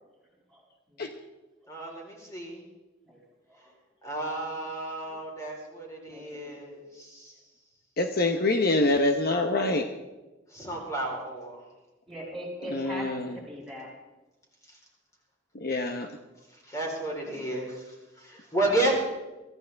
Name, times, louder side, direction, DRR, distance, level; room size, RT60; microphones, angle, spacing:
voice 1, 1.7-2.6 4.0-7.3 10.5-11.6 14.7-14.8 16.7-18.9, right 1 dB, 20° left, -1 dB, 4.0 m, -32 dB
voice 2, 6.1-6.6 12.1-13.9, equal, ahead, -6 dB, 6.5 m, -40 dB
voice 3, 8.0-9.9 12.7-13.4 15.5-16.1, left 2 dB, 55° left, 5 dB, 1.0 m, -25 dB
23.0 x 14.5 x 3.5 m, 1.1 s
head